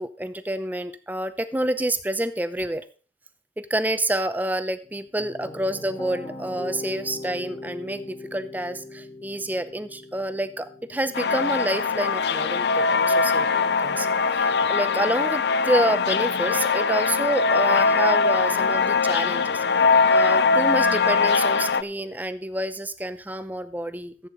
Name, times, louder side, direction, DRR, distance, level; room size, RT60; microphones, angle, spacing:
voice 1, 0.0-2.8 3.7-14.1 14.4-19.6 20.1-24.3, right 1 dB, 10° right, 12 dB, 0.7 m, -28 dB
sound 1, 4.8-13.9, left 2 dB, 25° left, 2.3 m, -41 dB
sound 2, 11.1-21.8, left 4 dB, 75° left, 0.5 m, -21 dB
14.5 x 8.6 x 4.0 m, 0.38 s
head